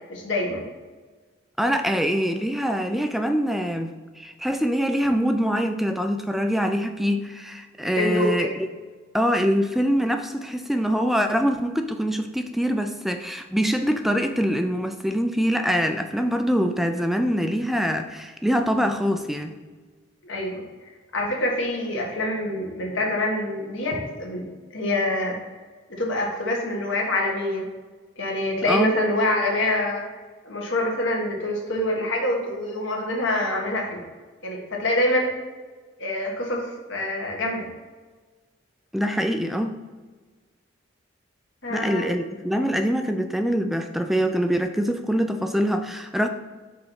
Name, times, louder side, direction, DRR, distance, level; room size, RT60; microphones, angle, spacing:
voice 1, 0.1-0.6 7.9-8.4 20.2-20.6 21.1-24.4 24.7-25.4 25.9-27.6 28.2-30.0 30.4-34.0 34.4-35.3 36.0-37.7 41.6-42.1, left 1 dB, 70° left, -1 dB, 1.5 m, -25 dB
voice 2, 1.6-8.7 9.1-19.6 28.7-29.0 38.9-39.7 41.7-46.3, equal, ahead, 6 dB, 0.3 m, -24 dB
5.5 x 4.0 x 5.8 m, 1.4 s
head